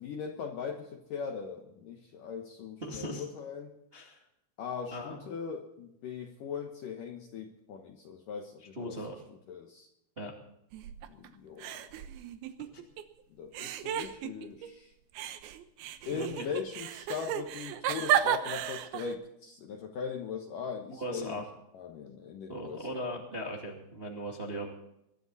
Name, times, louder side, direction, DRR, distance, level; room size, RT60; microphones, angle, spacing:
voice 1, 0.0-3.7 4.6-9.0 9.5-9.9 11.1-11.8 13.4-14.9 16.1-21.4 21.7-23.2, left 6 dB, 70° left, 3 dB, 2.1 m, -40 dB
voice 2, 2.8-3.2 3.9-4.2 4.9-5.2 8.7-9.2 10.2-10.3 12.7-12.8 16.1-16.5 20.9-21.5 22.5-24.7, equal, 25° right, 0 dB, 1.2 m, -38 dB
sound 1, 10.7-11.3 11.6-13.0 13.5-14.7 15.1-19.2, right 11 dB, 70° right, 2.5 m, -33 dB
23.0 x 12.0 x 4.1 m, 0.81 s
omnidirectional pair, 5.3 m